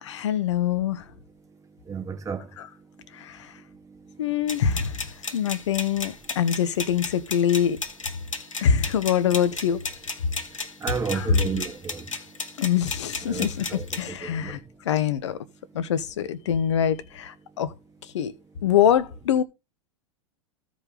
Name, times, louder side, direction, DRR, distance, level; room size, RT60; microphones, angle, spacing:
voice 1, 0.0-1.0 2.6-2.7 3.2-3.4 4.2-4.9 5.3-7.8 8.6-9.8 11.1-11.4 12.6-14.6 14.8-15.4 15.7-17.7 18.1-18.3 18.6-19.4, left 9 dB, 60° left, 1.2 m, -24 dB
voice 2, 1.8-2.5 3.0-3.1 3.5-4.5 10.8-12.4 13.3-14.6 15.8-15.9, right 6 dB, 20° right, 2.0 m, -33 dB
sound 1, 4.5-14.1, left 4 dB, 80° left, 1.5 m, -34 dB
15.5 x 5.2 x 3.9 m
figure-of-eight pair, 95°, 17 cm